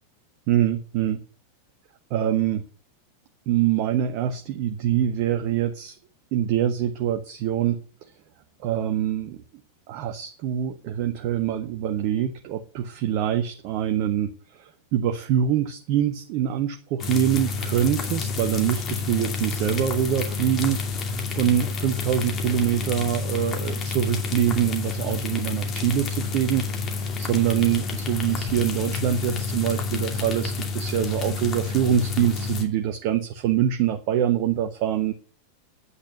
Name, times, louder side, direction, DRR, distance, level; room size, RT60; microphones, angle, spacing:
voice 1, 0.5-1.2 2.1-2.6 3.5-6.0 6.3-7.8 8.6-9.4 9.9-14.3 14.6-35.1, right 10 dB, 45° right, 7 dB, 1.1 m, -24 dB
sound 1, 17.0-32.6, left 4 dB, 30° left, 2.5 m, -29 dB
9.7 x 8.8 x 6.9 m, 0.40 s
figure-of-eight pair, 90°, 0 cm